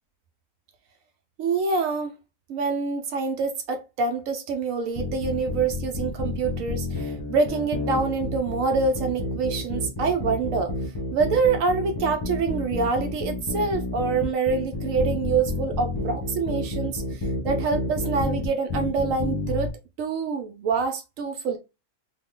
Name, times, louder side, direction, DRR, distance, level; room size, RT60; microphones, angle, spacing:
voice 1, 1.4-2.1 2.5-10.7 11.1-19.7 20.0-21.6, right 4 dB, 75° right, 1.0 m, -26 dB
sound 1, 4.9-19.7, left 2 dB, 25° left, 0.6 m, -30 dB
3.0 x 2.1 x 3.7 m
omnidirectional pair, 1.4 m